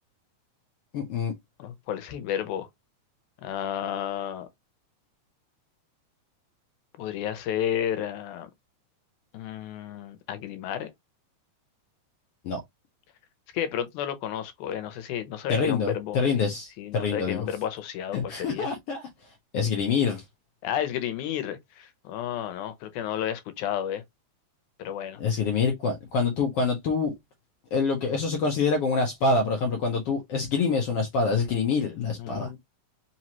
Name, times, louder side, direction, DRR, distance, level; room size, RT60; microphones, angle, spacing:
voice 1, 0.9-1.3 12.4-12.6 15.5-17.5 18.1-19.0 19.5-20.2 25.2-27.1 27.7-32.6, left 4 dB, 70° left, 1.5 m, -26 dB
voice 2, 1.6-2.7 3.4-4.5 7.0-8.5 9.3-10.9 13.5-18.7 20.6-24.0 24.8-25.2 32.2-32.6, left 10 dB, 90° left, 2.2 m, -32 dB
4.9 x 3.0 x 2.8 m
omnidirectional pair, 3.4 m